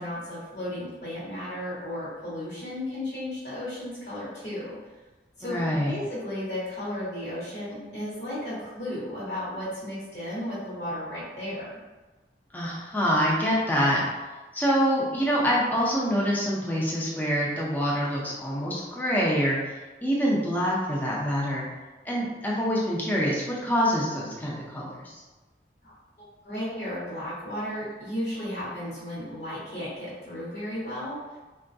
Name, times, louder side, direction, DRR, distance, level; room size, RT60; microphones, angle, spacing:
voice 1, 0.0-4.8 5.4-5.6 5.8-11.8 25.8-25.9 26.4-31.2, left 1 dB, 60° left, -9 dB, 1.0 m, -34 dB
voice 2, 5.4-5.9 12.5-14.0 14.5-19.7 20.0-21.6 22.0-25.2, equal, 10° left, -5 dB, 0.5 m, -25 dB
3.6 x 2.2 x 2.6 m, 1.2 s
head